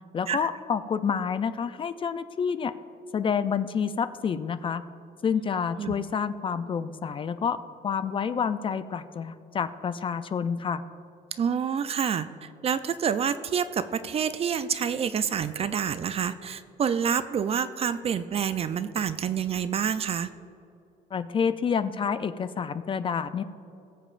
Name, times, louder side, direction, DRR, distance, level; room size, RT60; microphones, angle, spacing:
voice 1, 0.1-2.7 3.1-4.8 5.2-7.6 7.8-10.8 21.1-23.4, left 6 dB, 30° left, 12 dB, 0.4 m, -28 dB
voice 2, 11.4-20.3, right 7 dB, 35° right, 13 dB, 0.4 m, -28 dB
20.0 x 7.2 x 2.5 m, 2.8 s
cardioid pair, 110°, 17 cm